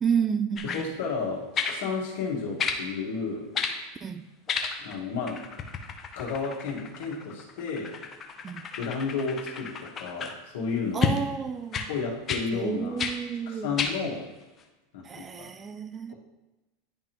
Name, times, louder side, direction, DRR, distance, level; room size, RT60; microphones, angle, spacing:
voice 1, 0.0-0.9 4.0-4.3 8.4-8.7 10.9-11.9 12.5-13.8 15.0-16.1, right 7 dB, 20° right, 0.3 m, -30 dB
voice 2, 0.6-3.5 4.8-5.5 6.2-8.0 8.8-11.1 11.9-13.0 13.5-14.3 14.9-15.5 16.1-16.2, left 5 dB, 75° left, 1.7 m, -32 dB
sound 1, 0.6-0.9 1.6-1.8 2.6-2.8 3.5-3.8 4.5-5.0 5.3-10.4 11.0-11.2 11.7-11.9 12.3-12.5 13.0-13.2 13.8-14.0 14.6-14.7, left 5 dB, 25° left, 0.6 m, -31 dB
10.5 x 3.6 x 3.0 m
supercardioid pair, 145°, 0 cm